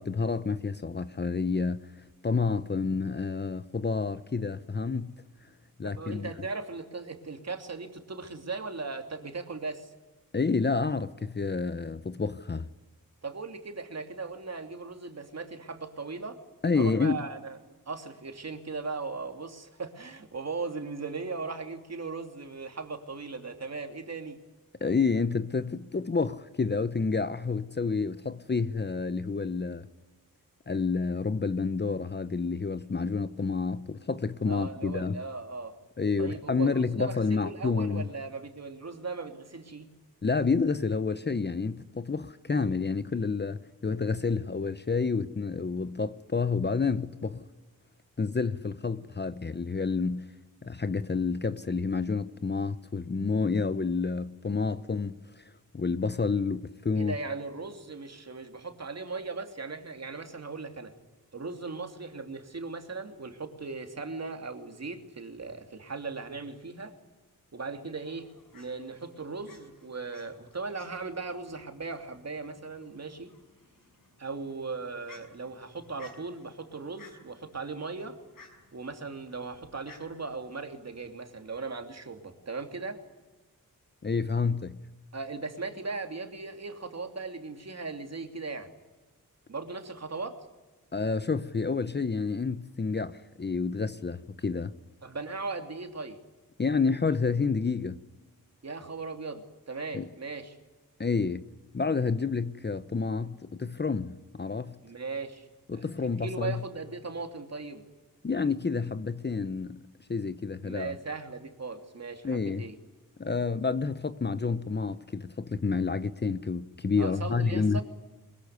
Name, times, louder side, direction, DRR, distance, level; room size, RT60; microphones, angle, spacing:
voice 1, 0.0-1.8 2.2-5.1 5.8-6.3 10.3-12.7 16.6-17.2 24.8-29.9 30.7-35.2 36.0-38.0 40.2-47.4 48.2-50.3 50.6-55.4 55.7-57.2 84.0-84.8 90.9-94.7 96.6-98.0 99.9-100.1 101.0-101.4 101.7-104.8 105.7-106.6 108.2-109.8 110.1-110.9 112.2-112.7 113.2-117.8, left 4 dB, 30° left, 0.9 m, -29 dB
voice 2, 5.8-9.9 13.2-16.4 16.7-17.6 17.9-24.4 34.5-35.7 36.2-39.9 57.0-60.9 61.3-66.9 67.5-68.3 68.5-73.3 74.2-78.2 78.7-83.0 85.1-88.7 89.5-90.4 95.0-96.2 98.6-100.6 104.8-105.5 105.7-107.8 110.6-112.7 117.0-117.8, right 4 dB, 45° right, 2.9 m, -38 dB
Fowl, 67.9-81.6, left 4 dB, 70° left, 6.1 m, -58 dB
22.5 x 21.5 x 9.6 m
wide cardioid pair, 95°, 35 cm